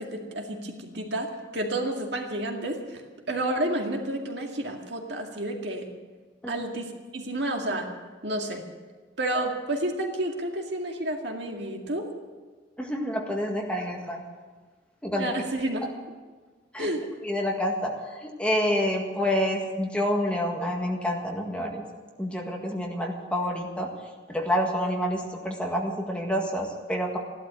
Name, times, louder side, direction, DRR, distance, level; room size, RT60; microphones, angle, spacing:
voice 1, 0.0-3.0 3.3-5.9 6.5-7.9 8.2-8.6 9.2-12.1 15.2-15.9 16.8-17.1, right 1 dB, 65° right, 2 dB, 2.1 m, -30 dB
voice 2, 12.8-14.2 15.0-15.3 16.7-16.9 17.2-21.8 22.2-23.9 24.3-27.2, equal, 5° left, 0 dB, 1.8 m, -28 dB
15.0 x 12.0 x 7.7 m, 1.4 s
head